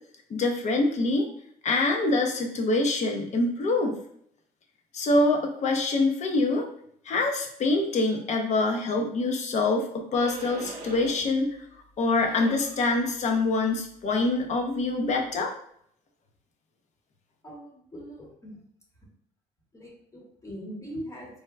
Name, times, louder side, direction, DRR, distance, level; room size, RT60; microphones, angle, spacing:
voice 1, 0.3-1.3 1.6-4.0 4.9-6.7 7.1-11.5 12.0-15.5, left 2 dB, 45° left, 2 dB, 0.7 m, -25 dB
sound 1, 10.1-11.4 11.7-15.4, right 2 dB, 65° right, 0.7 m, -44 dB
voice 2, 17.4-18.6 19.7-21.4, equal, 20° left, -2 dB, 1.0 m, -41 dB
4.7 x 2.1 x 2.2 m, 0.69 s
cardioid pair, 110°, 17 cm